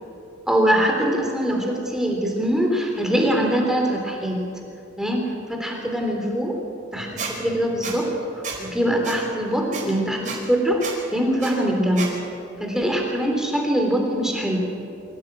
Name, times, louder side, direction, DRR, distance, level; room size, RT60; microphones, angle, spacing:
voice 1, 0.5-4.4 5.0-5.2 5.5-6.6 6.9-8.1 8.6-10.8 11.1-12.1 12.6-14.6, equal, 5° right, 0 dB, 3.4 m, -22 dB
Squeak, 7.2-7.3 7.8-7.9 8.4-8.6 9.0-9.2 9.7-9.8 10.2-10.4 10.8-10.9 11.4-11.5 12.0-12.1, right 6 dB, 40° right, 4.8 m, -30 dB
24.5 x 17.0 x 8.7 m, 2.6 s
head